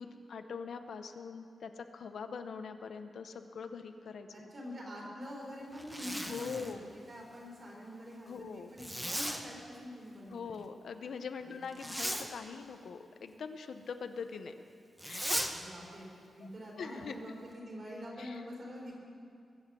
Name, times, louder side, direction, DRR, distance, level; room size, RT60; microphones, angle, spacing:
voice 1, 0.0-4.5 6.2-6.9 8.3-8.7 10.3-14.5 15.0-15.4 16.8-17.2 18.2-18.4, left 5 dB, 65° left, 8 dB, 0.7 m, -43 dB
voice 2, 4.3-10.6 11.5-11.7 15.5-16.1 16.3-19.0, equal, 40° right, -3 dB, 4.0 m, -46 dB
Zipper (clothing), 5.7-6.8 8.8-9.4 11.7-12.3 15.0-15.5, equal, 5° right, 0.9 m, -36 dB
21.5 x 7.8 x 6.2 m, 2.3 s
wide cardioid pair, 165°, 0 cm